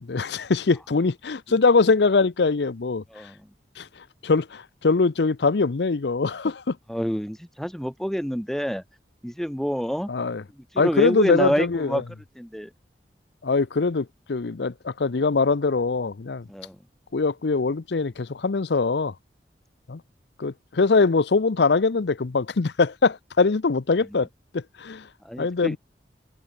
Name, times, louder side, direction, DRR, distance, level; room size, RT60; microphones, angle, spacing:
voice 1, 0.0-3.0 3.8-3.9 4.2-6.8 10.1-10.4 10.8-12.0 13.4-16.5 17.1-19.1 19.9-20.0 20.4-24.3 24.5-25.1 25.4-25.8, left 4 dB, 75° left, 0.6 m, -22 dB
voice 2, 6.9-8.8 9.2-10.1 10.7-12.0 12.4-12.7 16.5-16.8 25.2-25.8, equal, ahead, 1.7 m, -27 dB
head